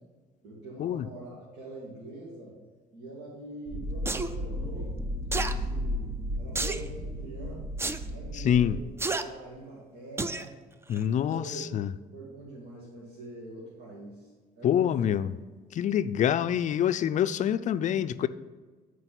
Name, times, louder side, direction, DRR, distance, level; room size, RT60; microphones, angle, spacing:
voice 1, 0.4-2.6 2.9-4.9 5.3-6.1 6.4-7.6 8.0-8.9 9.2-10.5 11.0-11.7 12.1-14.3 14.6-15.1, right 2 dB, 75° right, -6 dB, 2.4 m, -44 dB
sound 1, 3.7-8.8, equal, 45° right, 1.2 m, -34 dB
sound 2, 4.1-4.3 5.3-5.5 6.6-6.9 7.8-8.0 9.0-9.2 10.2-10.5 10.9-11.0, right 3 dB, 15° right, 0.4 m, -30 dB
voice 2, 8.3-8.8 10.9-11.9 14.6-15.3 15.7-18.3, left 9 dB, 45° left, 13 dB, 0.4 m, -26 dB
9.7 x 4.9 x 5.8 m, 1.4 s
cardioid pair, 110°, 17 cm